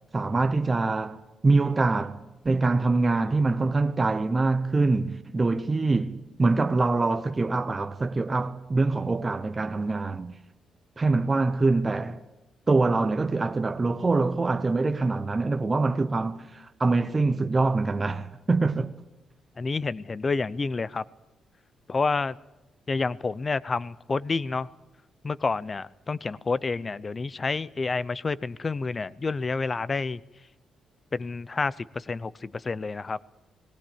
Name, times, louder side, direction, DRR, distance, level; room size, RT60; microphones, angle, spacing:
voice 1, 0.1-2.2 2.4-10.3 11.0-12.2 12.7-18.9, right 3 dB, 25° right, 0.9 m, -24 dB
voice 2, 19.6-21.0 21.9-22.3 22.9-24.7 25.2-30.2 31.1-33.2, left 4 dB, 30° left, 0.7 m, -29 dB
19.5 x 18.0 x 8.7 m
cardioid pair, 105°, 0 cm